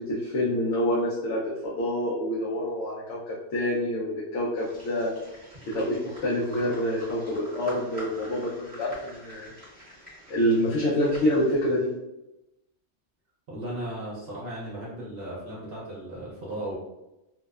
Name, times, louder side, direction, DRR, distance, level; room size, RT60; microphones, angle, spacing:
voice 1, 0.0-5.1 5.7-9.5 10.3-11.9, equal, 80° left, -6 dB, 0.9 m, -27 dB
sound 1, 4.6-11.9, equal, 10° left, 0.8 m, -46 dB
voice 2, 13.5-16.8, right 1 dB, 60° right, -6 dB, 0.8 m, -36 dB
2.7 x 2.0 x 2.3 m, 0.94 s
omnidirectional pair, 1.2 m